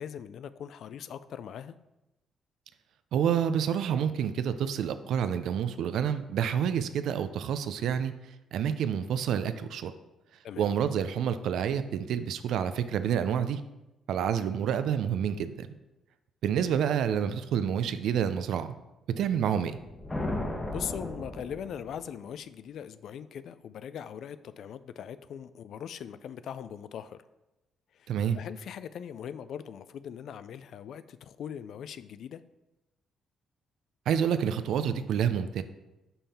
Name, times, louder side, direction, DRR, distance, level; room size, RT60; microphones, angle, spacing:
voice 1, 0.0-1.7 10.4-10.7 20.7-27.2 27.9-32.4, left 8 dB, 70° left, 0.3 m, -40 dB
voice 2, 3.1-8.1 8.5-9.9 10.6-13.6 14.1-15.7 16.4-18.7 19.2-19.8 28.1-28.4 34.1-35.6, right 8 dB, 75° right, 0.4 m, -28 dB
sound 1, 19.7-22.2, left 1 dB, 20° left, 1.0 m, -35 dB
5.6 x 5.4 x 4.2 m
cardioid pair, 90°, 0 cm